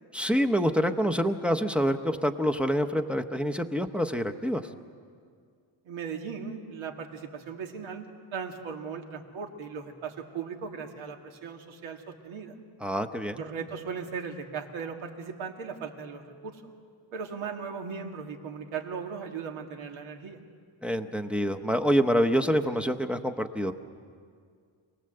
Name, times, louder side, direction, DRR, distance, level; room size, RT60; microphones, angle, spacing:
voice 1, 0.1-4.7 12.8-13.4 20.8-23.7, equal, ahead, 6 dB, 0.7 m, -26 dB
voice 2, 5.8-8.1 8.3-12.5 13.4-16.6 17.1-20.4, right 6 dB, 85° right, 3 dB, 2.2 m, -38 dB
26.5 x 19.0 x 7.8 m, 2.2 s
cardioid pair, 140°, 47 cm